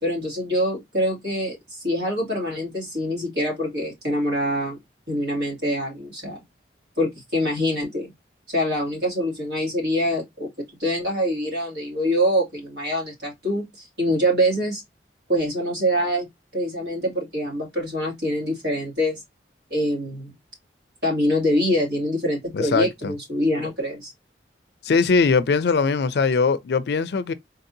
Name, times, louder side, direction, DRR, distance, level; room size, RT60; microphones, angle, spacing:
voice 1, 0.0-4.8 5.1-6.4 7.0-8.1 8.5-10.5 10.8-14.8 15.3-16.3 16.5-19.2 19.7-20.4 21.0-24.1, equal, 70° right, 2.1 m, -24 dB
voice 2, 22.5-23.1 24.8-27.3, left 4 dB, 65° left, 0.4 m, -21 dB
3.9 x 2.7 x 2.6 m
head